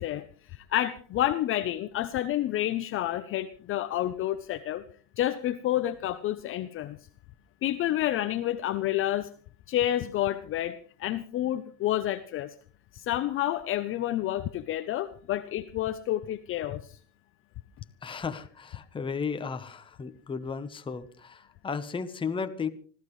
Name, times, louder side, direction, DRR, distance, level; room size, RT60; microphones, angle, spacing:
voice 1, 0.0-4.8 5.2-7.0 7.6-9.3 9.7-12.5 12.9-17.0, left 13 dB, 35° left, 10 dB, 0.7 m, -29 dB
voice 2, 18.0-22.7, left 5 dB, 15° left, 8 dB, 1.0 m, -34 dB
25.5 x 14.5 x 3.2 m, 0.42 s
supercardioid pair, 145°, 37 cm